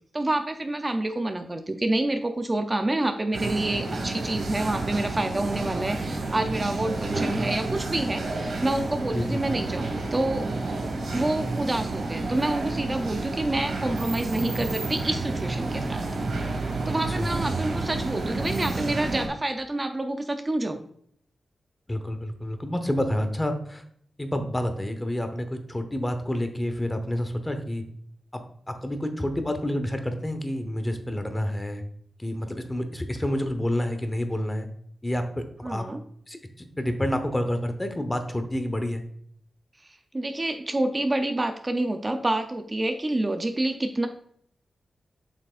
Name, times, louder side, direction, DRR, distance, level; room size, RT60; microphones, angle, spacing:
voice 1, 0.1-10.5 11.1-16.0 16.9-20.8 35.6-36.0 39.8-44.1, right 1 dB, 25° right, 6 dB, 0.6 m, -28 dB
sound 1, 3.3-19.3, right 3 dB, 80° right, 1.8 m, -30 dB
voice 2, 9.1-9.4 17.2-17.3 21.9-23.8 24.2-27.8 28.3-31.8 32.2-34.7 35.0-35.9 36.3-39.0, left 1 dB, 15° left, 7 dB, 0.9 m, -29 dB
sound 2, 14.3-18.0, left 1 dB, 80° left, 2.0 m, -45 dB
7.6 x 6.1 x 2.5 m, 0.65 s
cardioid pair, 80°, 0 cm